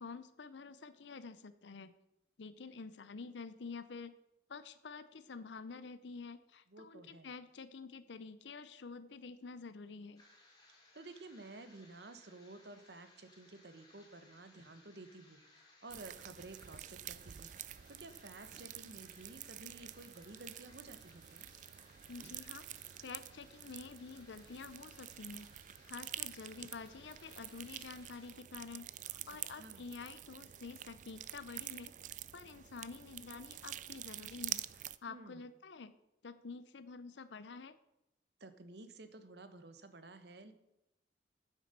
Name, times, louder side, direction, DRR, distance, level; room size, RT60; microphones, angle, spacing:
voice 1, 0.0-1.9 2.4-4.2 4.5-10.2 22.1-22.7 23.0-25.5 25.9-31.9 32.3-36.0 36.2-37.8, left 4 dB, 75° left, 13 dB, 0.6 m, -49 dB
voice 2, 6.7-7.3 10.9-17.5 17.9-21.5 29.5-29.8 35.1-35.5 38.4-40.5, right 2 dB, 65° right, 10 dB, 1.1 m, -53 dB
sound 1, 10.2-28.3, left 2 dB, 20° left, 2.9 m, -64 dB
sound 2, 15.9-35.0, right 12 dB, 40° right, 0.3 m, -48 dB
9.3 x 8.0 x 6.6 m, 0.88 s
head